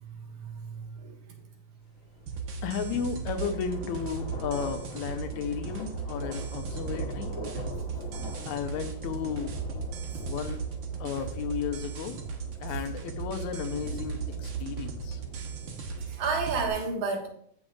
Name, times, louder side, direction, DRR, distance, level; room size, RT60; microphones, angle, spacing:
voice 1, 0.0-1.1 12.7-12.8 16.0-17.3, right 4 dB, 85° right, 1 dB, 3.0 m, -32 dB
sound 1, 2.0-16.5, left 1 dB, 40° left, 1.4 m, -43 dB
sound 2, 2.3-16.7, right 6 dB, 55° right, 1.4 m, -37 dB
voice 2, 2.6-7.3 8.5-9.6 10.2-10.6 11.0-12.2 12.6-15.2, left 7 dB, 85° left, 7 dB, 2.2 m, -34 dB
15.5 x 6.2 x 2.5 m, 0.63 s
omnidirectional pair, 3.3 m